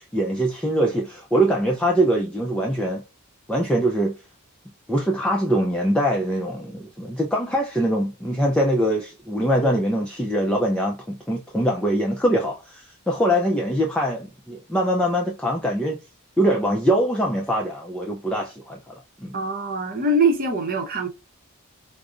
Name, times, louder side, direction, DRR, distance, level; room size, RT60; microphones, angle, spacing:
voice 1, 0.0-3.0 3.5-4.1 4.9-16.0 16.4-19.4, equal, 5° left, 0.3 m, -23 dB
voice 2, 19.3-21.1, right 2 dB, 45° right, 0.7 m, -22 dB
4.8 x 2.0 x 2.4 m
head